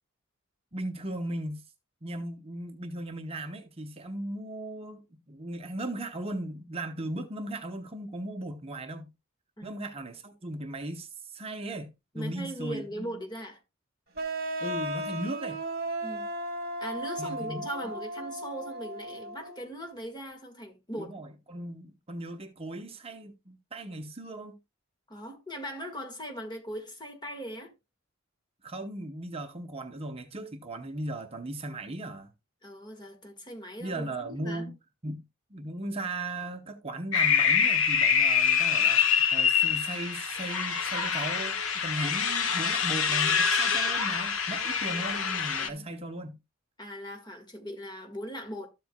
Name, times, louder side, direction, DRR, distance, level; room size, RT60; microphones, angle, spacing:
voice 1, 0.7-1.6 2.0-9.1 9.6-13.2 14.6-15.6 17.2-17.7 21.0-24.6 28.6-32.3 33.8-34.7 35.0-35.2 35.5-41.6 41.8-46.4, right 1 dB, 30° right, 0.8 m, -37 dB
voice 2, 12.1-13.6 16.0-16.3 16.8-21.1 25.1-27.7 32.6-34.7 45.6-45.8 46.8-48.7, equal, 20° left, 1.6 m, -39 dB
sound 1, 14.2-19.7, right 1 dB, 50° right, 1.4 m, -35 dB
sound 2, 37.1-45.7, left 6 dB, 80° left, 1.2 m, -25 dB
13.0 x 7.6 x 2.2 m
head